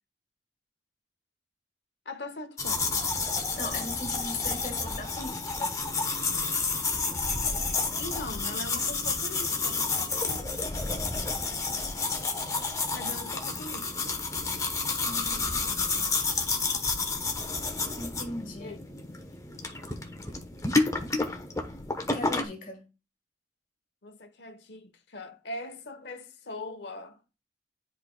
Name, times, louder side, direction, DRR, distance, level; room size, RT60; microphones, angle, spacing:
voice 1, 2.0-3.0 7.9-10.5 12.9-14.2 18.6-18.8 24.0-27.2, left 2 dB, 75° left, 1.0 m, -41 dB
sound 1, 2.6-22.4, left 3 dB, 20° left, 0.9 m, -30 dB
voice 2, 3.6-5.8 15.0-16.2 17.9-18.8 22.1-22.9, left 2 dB, 50° left, 1.5 m, -39 dB
10.5 x 4.5 x 2.2 m
head